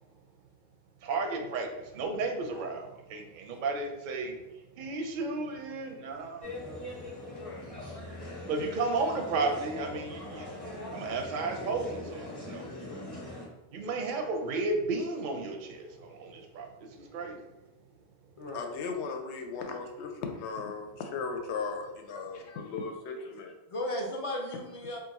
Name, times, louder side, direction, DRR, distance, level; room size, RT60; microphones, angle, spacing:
voice 1, 1.0-7.0 8.5-10.5 10.9-12.9 13.7-17.4, right 3 dB, 60° right, 4 dB, 0.6 m, -33 dB
sound 1, 6.4-13.5, left 1 dB, 25° left, 0.9 m, -41 dB
voice 2, 7.3-7.7 7.9-8.2 18.4-18.7 23.7-25.0, left 1 dB, 40° left, -1 dB, 0.5 m, -36 dB
voice 3, 18.5-23.5, left 5 dB, 85° left, 4 dB, 0.9 m, -37 dB
2.5 x 2.5 x 4.0 m, 0.97 s
omnidirectional pair, 1.1 m